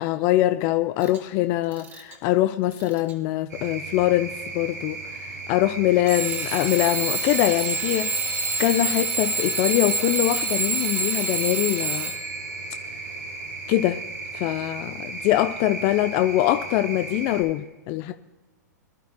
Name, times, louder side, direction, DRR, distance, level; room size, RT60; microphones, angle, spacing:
voice 1, 0.0-5.0 5.5-8.2 8.6-12.1 13.7-14.0 14.3-18.1, left 15 dB, 40° left, 9 dB, 0.6 m, -23 dB
Alarm / Clock, 1.0-1.2 1.7-2.1 2.7-3.1 4.0-4.1 6.1-12.5, right 3 dB, 25° right, 2.7 m, -27 dB
sound 1, 3.5-17.4, right 3 dB, 85° right, 4.3 m, -36 dB
23.5 x 11.5 x 2.2 m, 1.2 s
hypercardioid pair, 110°, 9 cm